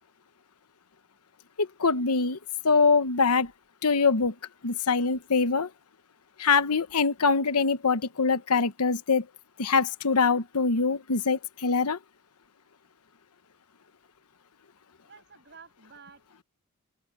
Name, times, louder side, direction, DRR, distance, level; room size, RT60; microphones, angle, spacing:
voice 1, 1.6-2.4 2.6-3.5 3.8-4.3 4.6-5.7 6.4-9.3 9.6-12.0, left 4 dB, 90° left, 1.0 m, -24 dB
voice 2, 15.0-16.4, right 5 dB, 50° right, 7.6 m, -52 dB
open air
head